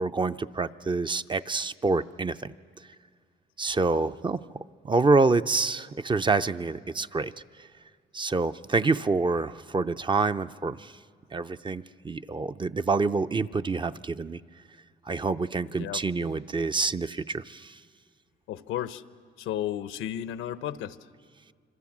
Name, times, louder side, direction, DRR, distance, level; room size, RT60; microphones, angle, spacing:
voice 1, 0.0-2.9 3.6-7.7 8.1-11.0 11.3-14.4 15.0-17.8, right 3 dB, 25° right, 11 dB, 0.6 m, -27 dB
voice 2, 15.7-16.3 18.5-19.0 19.4-21.0, left 11 dB, 90° left, 14 dB, 0.9 m, -33 dB
26.5 x 26.0 x 7.3 m, 2.1 s
cardioid pair, 90°, 20 cm